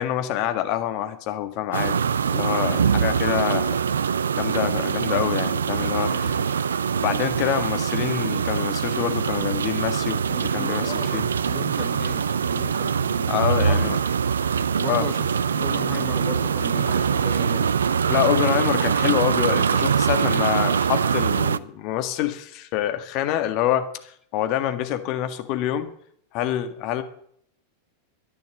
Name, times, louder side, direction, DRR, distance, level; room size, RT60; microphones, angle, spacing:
voice 1, 0.0-2.0 2.3-3.8 4.3-6.3 7.0-11.2 13.3-14.0 14.9-15.1 18.1-25.9 26.3-27.0, left 12 dB, 40° left, 1.7 m, -26 dB
sound 1, 1.7-21.6, right 7 dB, 70° right, 0.5 m, -23 dB
voice 2, 2.7-3.5 6.1-6.6 10.3-13.9 14.8-17.7, left 3 dB, 15° left, 1.4 m, -37 dB
13.0 x 10.5 x 7.5 m
figure-of-eight pair, 90°, 0 cm